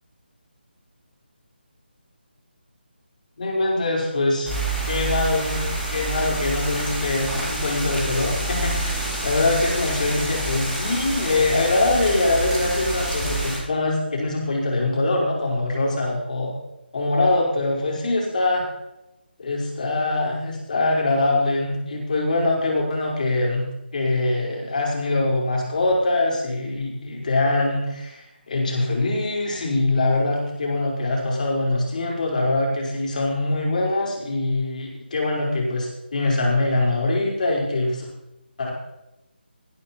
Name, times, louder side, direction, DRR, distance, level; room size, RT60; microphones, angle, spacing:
voice 1, 3.4-4.5 4.9-5.6 5.9-16.5 16.9-18.7 19.4-23.6 23.9-38.1 38.6-38.7, left 2 dB, 45° left, -2 dB, 5.2 m, -23 dB
sound 1, 4.4-13.6, right 1 dB, 5° right, 4.9 m, -27 dB
17.5 x 10.0 x 4.5 m, 0.92 s
figure-of-eight pair, 155°, 6 cm